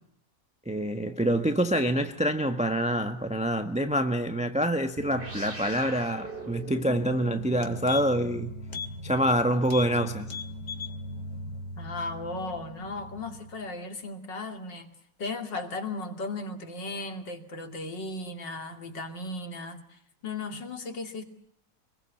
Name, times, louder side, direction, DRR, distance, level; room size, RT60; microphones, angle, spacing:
voice 1, 0.6-8.6 9.0-10.3, equal, 5° right, 1.1 m, -26 dB
sound 1, 5.0-13.8, equal, 30° right, 3.3 m, -40 dB
sound 2, 7.0-7.1 7.4-8.3 8.7-8.9 9.2-9.4 9.7-9.9 10.2-11.0 11.3-11.4, left 7 dB, 70° left, 3.1 m, -38 dB
voice 2, 11.8-14.9 15.2-21.2, left 2 dB, 90° left, 3.3 m, -36 dB
27.5 x 22.0 x 8.4 m
omnidirectional pair, 1.9 m